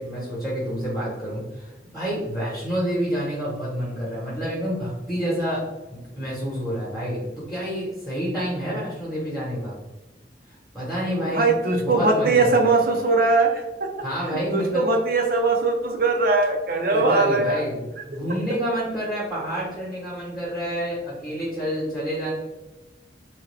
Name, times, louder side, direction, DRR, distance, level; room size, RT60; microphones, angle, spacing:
voice 1, 0.0-5.6 6.2-9.8 10.7-11.5 11.8-12.7 14.0-14.9 16.9-17.8 18.1-22.3, equal, 5° left, -8 dB, 1.0 m, -28 dB
voice 2, 11.2-13.9 14.5-17.6, right 3 dB, 50° right, 3 dB, 0.5 m, -20 dB
3.4 x 2.2 x 3.3 m, 1.1 s
head